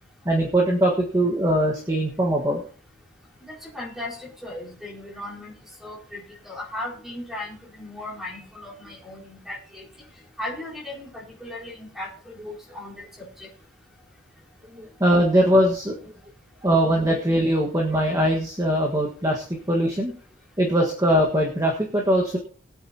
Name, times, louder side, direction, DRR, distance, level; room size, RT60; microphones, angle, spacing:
voice 1, 0.2-2.6 14.7-16.0 16.6-20.1 20.6-22.4, equal, 20° right, -1 dB, 1.5 m, -21 dB
voice 2, 3.7-5.5 5.8-9.8 10.4-13.5, left 1 dB, ahead, -5 dB, 4.1 m, -37 dB
21.0 x 8.9 x 2.9 m, 0.41 s
head